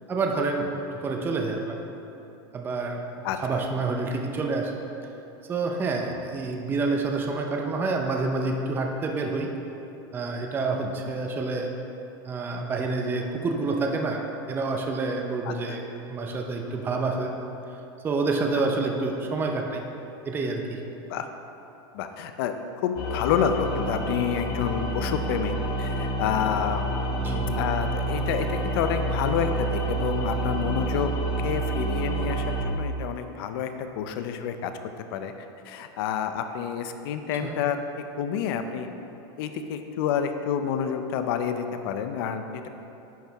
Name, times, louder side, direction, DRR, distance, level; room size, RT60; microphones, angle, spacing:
voice 1, 0.1-1.8 2.5-3.0 3.4-4.8 5.5-9.5 10.1-11.7 12.3-14.2 14.5-15.8 16.1-17.3 18.0-19.8 20.3-20.8 27.2-27.5 37.4-37.6, right 3 dB, 15° right, 2 dB, 0.5 m, -28 dB
voice 2, 3.2-3.6 6.1-6.2 10.8-10.9 15.4-15.8 21.1-21.3 21.9-22.5 22.8-26.8 27.5-31.1 31.4-34.7 35.1-35.3 35.6-38.9 39.4-42.7, left 8 dB, 65° left, 8 dB, 0.5 m, -29 dB
sound 1, 23.0-32.6, right 1 dB, 40° left, 1.2 m, -28 dB
10.5 x 4.5 x 3.4 m, 2.9 s
supercardioid pair, 150°, 13 cm